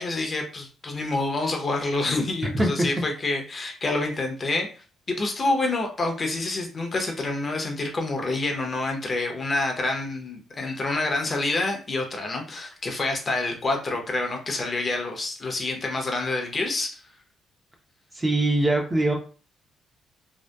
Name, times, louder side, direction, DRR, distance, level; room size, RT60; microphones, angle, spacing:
voice 1, 0.0-4.7 5.1-17.0, left 2 dB, 35° left, 2 dB, 0.6 m, -27 dB
voice 2, 18.1-19.1, right 2 dB, 20° right, 1 dB, 0.6 m, -22 dB
2.6 x 2.1 x 2.2 m, 0.37 s
cardioid pair, 90°, 0 cm